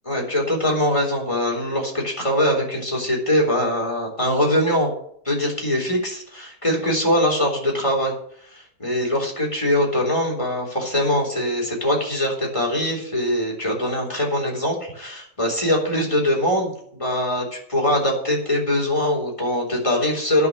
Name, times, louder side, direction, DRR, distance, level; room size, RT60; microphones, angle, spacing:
voice 1, 0.1-4.9 5.3-8.1 8.5-20.5, left 1 dB, 20° left, -1 dB, 3.6 m, -22 dB
10.5 x 6.9 x 8.6 m, 0.65 s
omnidirectional pair, 1.6 m